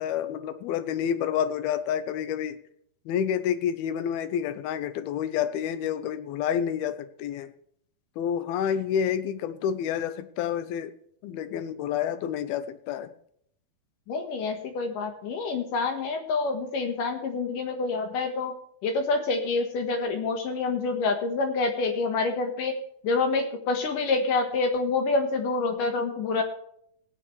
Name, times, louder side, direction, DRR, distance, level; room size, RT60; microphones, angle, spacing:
voice 1, 0.0-2.6 3.1-7.5 8.2-10.9 11.2-13.1, left 9 dB, 85° left, 12 dB, 2.8 m, -29 dB
voice 2, 14.1-18.5 18.8-22.8 23.0-26.4, left 3 dB, 65° left, 5 dB, 2.9 m, -27 dB
17.5 x 9.6 x 3.3 m, 0.68 s
omnidirectional pair, 4.3 m